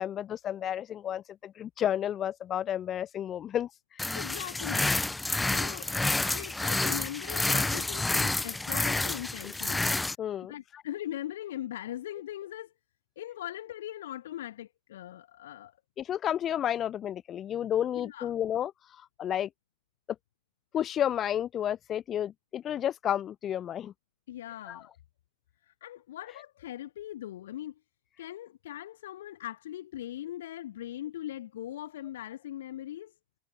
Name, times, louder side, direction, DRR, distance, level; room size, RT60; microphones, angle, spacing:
voice 1, 0.0-3.7 10.2-10.5 16.0-18.7 19.2-19.5 20.7-23.9 24.7-24.8, left 10 dB, 30° left, 1.2 m, -31 dB
sound 1, 4.0-10.1, left 2 dB, 5° left, 1.1 m, -29 dB
voice 2, 4.2-4.9 5.4-9.8 10.5-12.7 13.2-15.7 17.9-18.3 24.3-24.9 25.6-27.8 28.2-33.1, left 13 dB, 60° left, 2.2 m, -40 dB
figure-of-eight pair, 90°, 0 cm